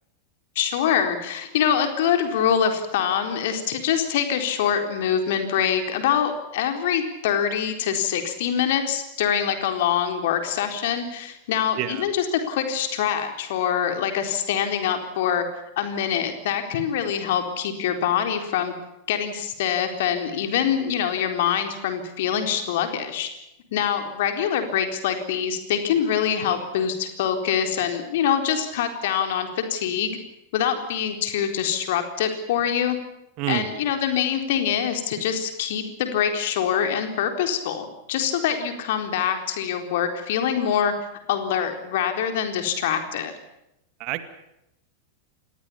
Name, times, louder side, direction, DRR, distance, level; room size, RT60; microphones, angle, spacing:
voice 1, 0.6-15.4 15.8-18.7 19.1-23.3 23.7-30.1 30.5-33.0 33.5-40.9 41.3-43.3, left 8 dB, 55° left, 6 dB, 4.0 m, -24 dB
voice 2, 11.8-12.0 33.4-33.7 44.0-44.2, right 14 dB, 40° right, 11 dB, 2.1 m, -27 dB
28.0 x 19.5 x 7.3 m, 0.86 s
figure-of-eight pair, 90°, 0 cm